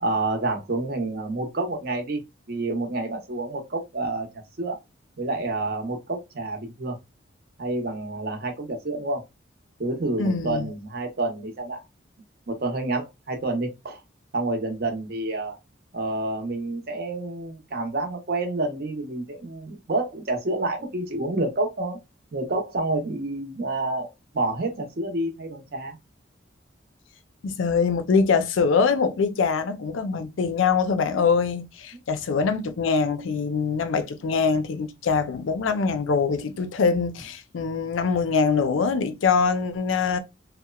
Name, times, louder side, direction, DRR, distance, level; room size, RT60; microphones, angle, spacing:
voice 1, 0.0-2.2 2.5-4.3 4.6-4.8 5.2-7.0 7.6-9.2 9.8-11.8 12.5-14.0 14.3-15.6 15.9-22.0 22.3-26.0, right 2 dB, 50° right, 0.7 m, -28 dB
voice 2, 10.2-10.7 27.4-40.2, left 5 dB, 85° left, 0.4 m, -23 dB
2.9 x 2.1 x 2.2 m
head